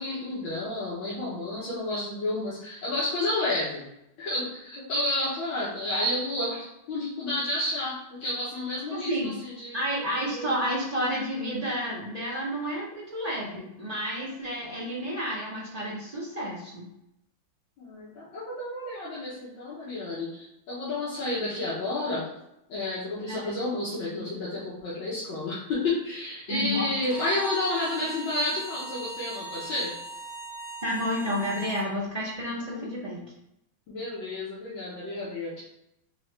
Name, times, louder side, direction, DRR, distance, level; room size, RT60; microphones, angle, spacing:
voice 1, 0.0-3.8 4.2-9.8 10.2-10.6 17.8-22.3 22.7-30.0 32.8-32.9 33.9-35.6, left 2 dB, 75° left, -8 dB, 1.8 m, -31 dB
voice 2, 8.9-9.3 9.7-16.9 23.3-23.5 26.5-26.9 30.8-33.2, equal, 70° right, -8 dB, 0.3 m, -31 dB
Bowed string instrument, 27.0-31.9, right 1 dB, 25° left, 1.4 m, -39 dB
4.3 x 2.9 x 3.2 m, 0.83 s
omnidirectional pair, 2.2 m